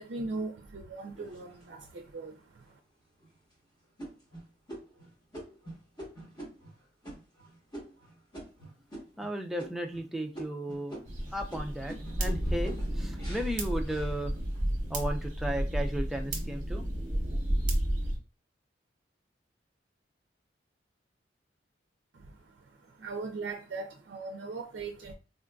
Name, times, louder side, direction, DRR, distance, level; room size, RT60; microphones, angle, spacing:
voice 1, 0.0-2.8 22.1-25.1, right 3 dB, 70° right, 0.4 m, -40 dB
sound 1, 1.1-2.0 2.6-2.7 3.2-3.5 4.0-9.3 9.6-10.1 10.3-14.7 15.1-15.7, right 1 dB, 20° left, 1.1 m, -46 dB
voice 2, 9.2-11.0 11.3-14.3 14.9-16.8 17.1-17.4, right 1 dB, ahead, 0.3 m, -35 dB
sound 2, 11.1-18.2, right 1 dB, 40° right, 0.8 m, -32 dB
3.7 x 2.4 x 2.3 m
head